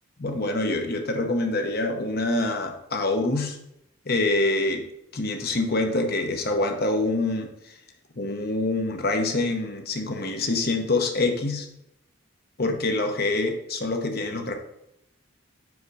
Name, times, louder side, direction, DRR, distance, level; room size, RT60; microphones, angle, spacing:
voice 1, 0.2-3.6 4.1-4.8 5.1-7.7 8.2-11.7 12.6-14.6, left 2 dB, 45° left, 4 dB, 0.9 m, -25 dB
5.1 x 5.1 x 4.8 m, 0.82 s
head